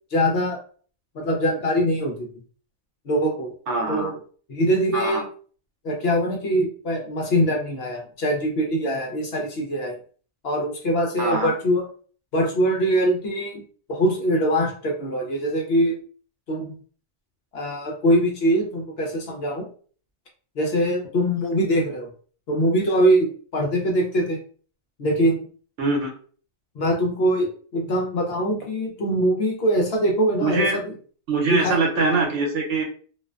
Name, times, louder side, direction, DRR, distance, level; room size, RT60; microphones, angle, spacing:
voice 1, 0.1-0.6 1.1-2.3 3.0-3.5 3.9-4.2 4.5-5.2 5.8-10.0 10.4-11.8 12.3-13.6 13.9-16.0 16.5-16.7 17.5-19.7 20.6-22.1 22.5-24.4 25.0-25.4 26.7-30.8 31.5-31.8, equal, 60° left, 1 dB, 0.8 m, -23 dB
voice 2, 3.7-4.1 4.9-5.2 11.2-11.5 25.8-26.1 30.4-30.8 31.3-32.8, right 3 dB, 70° right, 0 dB, 1.0 m, -23 dB
2.5 x 2.1 x 2.3 m, 0.43 s
omnidirectional pair, 1.3 m